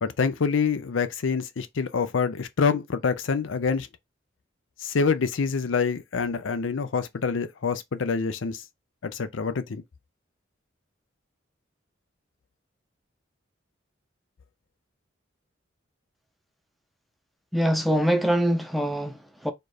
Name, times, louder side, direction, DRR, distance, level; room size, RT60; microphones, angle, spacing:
voice 1, 0.0-3.9 4.8-8.6 9.0-9.8, left 5 dB, 85° left, 0.5 m, -26 dB
voice 2, 17.5-19.5, equal, ahead, 0.6 m, -24 dB
4.4 x 2.4 x 4.8 m
head